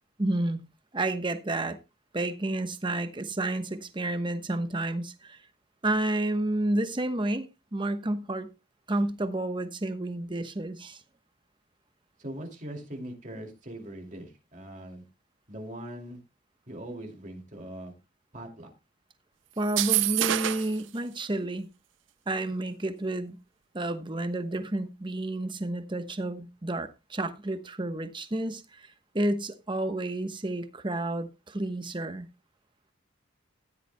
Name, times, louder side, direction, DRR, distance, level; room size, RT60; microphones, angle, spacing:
voice 1, 0.2-0.7 0.9-1.8 2.1-5.4 5.8-8.5 8.9-11.0 19.6-21.7 22.3-23.4 23.7-28.9 29.1-32.3, right 1 dB, 25° right, 1.0 m, -30 dB
voice 2, 12.2-15.0 15.5-16.2 16.7-17.9 18.3-18.7, right 1 dB, 40° right, 2.5 m, -41 dB
sound 1, 19.6-20.8, right 14 dB, 70° right, 0.5 m, -26 dB
15.0 x 11.0 x 2.2 m
head